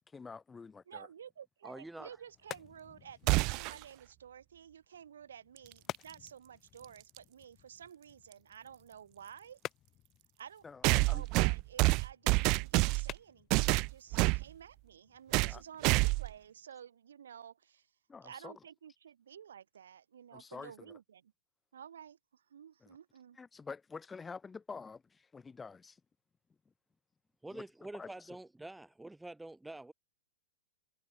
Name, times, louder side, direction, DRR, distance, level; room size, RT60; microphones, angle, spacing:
voice 1, 0.1-1.1 10.6-11.3 15.4-15.6 18.1-18.5 20.3-20.9 22.8-22.9 23.4-26.0 27.5-27.6 27.9-28.3, left 5 dB, 15° left, 3.7 m, -47 dB
voice 2, 0.9-9.6 10.4-17.9 18.2-21.3 21.7-23.4, right 8 dB, 80° right, 4.3 m, -52 dB
voice 3, 1.6-2.2 27.4-29.9, right 2 dB, 5° right, 0.9 m, -47 dB
sound 1, 1.9-15.4, left 12 dB, 30° left, 2.0 m, -52 dB
sound 2, 3.3-3.8 5.9-6.0 7.2-7.3 10.8-13.2 13.5-14.4 15.3-15.6 15.8-16.3, right 27 dB, 40° right, 0.3 m, -27 dB
hypercardioid pair, 125°, 0 cm